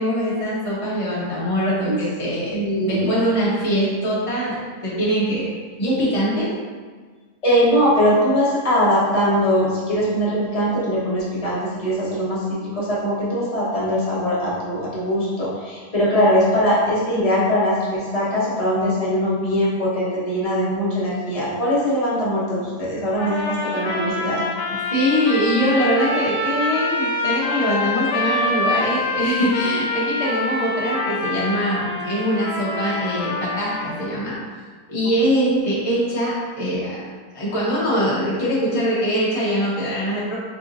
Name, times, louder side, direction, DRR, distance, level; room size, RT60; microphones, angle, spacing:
voice 1, 0.0-5.5 5.8-6.5 24.9-34.4 34.9-37.0 37.3-40.3, equal, 50° left, -8 dB, 0.4 m, -22 dB
voice 2, 2.5-3.1 7.4-24.4 28.3-28.5, equal, 30° left, -8 dB, 0.8 m, -21 dB
sound 1, 23.2-34.2, left 2 dB, 80° left, 1.1 m, -26 dB
3.9 x 3.4 x 2.6 m, 1.5 s
omnidirectional pair, 1.7 m